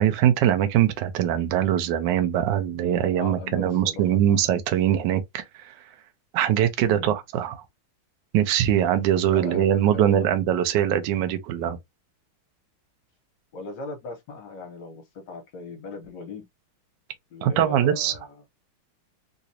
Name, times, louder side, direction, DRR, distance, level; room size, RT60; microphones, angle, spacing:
voice 1, 0.0-5.7 6.3-7.6 8.3-11.8 17.4-18.1, right 10 dB, 70° right, 1.2 m, -22 dB
voice 2, 3.2-4.4 6.8-7.1 9.3-10.3 13.5-16.5 17.3-18.4, left 3 dB, 60° left, 1.7 m, -38 dB
3.9 x 2.5 x 2.8 m
omnidirectional pair, 2.4 m